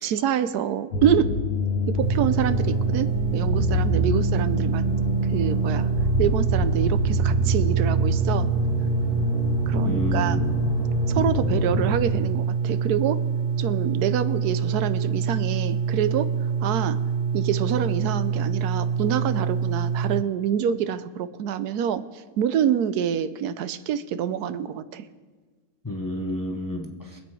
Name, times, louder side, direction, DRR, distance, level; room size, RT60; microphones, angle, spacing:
voice 1, 0.0-1.4 1.9-4.8 5.3-5.9 6.2-8.5 9.7-10.4 11.1-13.2 13.6-16.3 16.6-17.0 17.3-22.0 22.4-25.0, right 9 dB, 85° right, 12 dB, 1.2 m, -26 dB
sound 1, 0.9-12.0, left 1 dB, 80° left, 1.6 m, -26 dB
sound 2, 2.0-20.2, right 6 dB, 65° right, 0.6 m, -26 dB
voice 2, 9.8-10.4 25.8-27.2, equal, 15° left, 2 dB, 0.8 m, -30 dB
23.0 x 8.1 x 4.8 m, 1.4 s
omnidirectional pair, 1.6 m